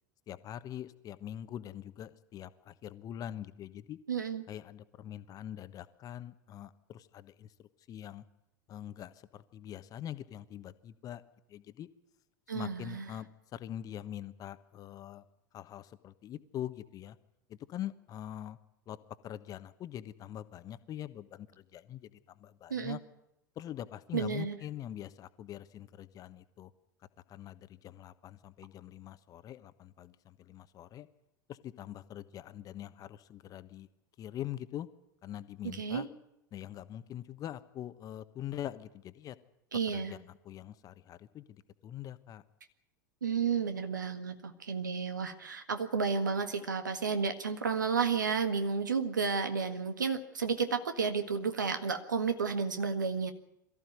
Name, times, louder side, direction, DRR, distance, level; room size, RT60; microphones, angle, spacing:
voice 1, 0.3-4.0 4.5-8.2 8.7-11.2 11.5-11.9 12.5-15.2 15.5-17.2 17.5-18.6 18.9-19.0 19.2-23.0 23.6-26.7 27.3-31.1 31.5-33.9 34.2-34.9 35.2-36.1 36.5-39.4 39.9-42.4, left 11 dB, 35° left, 13 dB, 1.2 m, -43 dB
voice 2, 4.1-4.4 12.5-13.1 22.7-23.0 24.1-24.6 35.6-36.1 39.7-40.1 43.2-53.3, right 5 dB, 80° right, 9 dB, 1.7 m, -32 dB
22.5 x 14.5 x 9.4 m, 0.85 s
figure-of-eight pair, 80°, 10 cm